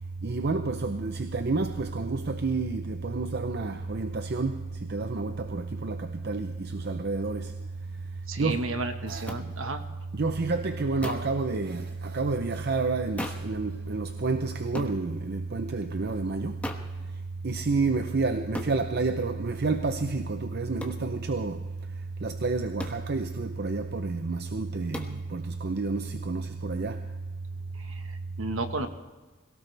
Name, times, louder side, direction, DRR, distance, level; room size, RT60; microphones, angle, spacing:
voice 1, 0.2-4.6 4.9-7.5 8.4-8.6 9.1-9.3 10.1-16.5 17.4-21.6 22.2-27.0, right 3 dB, 50° right, 0.7 m, -29 dB
voice 2, 8.3-9.8 27.7-28.9, right 2 dB, 70° right, 1.4 m, -33 dB
sound 1, 9.3-9.4 11.0-11.4 13.2-13.5 14.7-15.0 16.6-16.9 18.5-18.8 20.8-21.0 22.8-23.1 24.9-25.2, left 1 dB, 5° left, 1.2 m, -36 dB
22.0 x 17.5 x 3.4 m
head